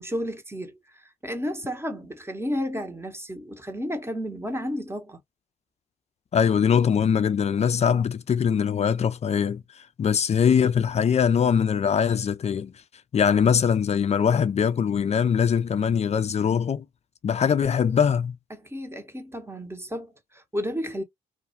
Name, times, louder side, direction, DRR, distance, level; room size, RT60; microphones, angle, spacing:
voice 1, 0.0-5.2 18.5-21.0, equal, 10° right, 0.8 m, -32 dB
voice 2, 6.3-9.6 10.0-12.7 13.1-16.8 17.2-18.4, left 7 dB, 30° left, 0.4 m, -22 dB
2.3 x 2.2 x 2.7 m
hypercardioid pair, 45°, 21 cm